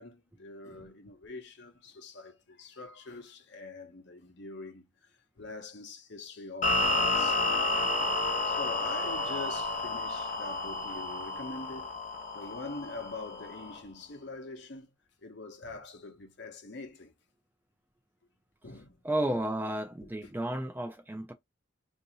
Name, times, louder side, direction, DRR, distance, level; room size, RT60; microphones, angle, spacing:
voice 1, 0.0-4.9 5.4-7.8 8.4-12.0 12.3-14.9 15.2-17.1 18.6-19.0 19.3-19.4, left 3 dB, 55° left, 0.8 m, -44 dB
sound 1, 6.6-13.8, left 2 dB, 35° left, 1.3 m, -31 dB
voice 2, 19.0-21.3, right 1 dB, 10° right, 0.3 m, -32 dB
2.8 x 2.6 x 3.9 m
head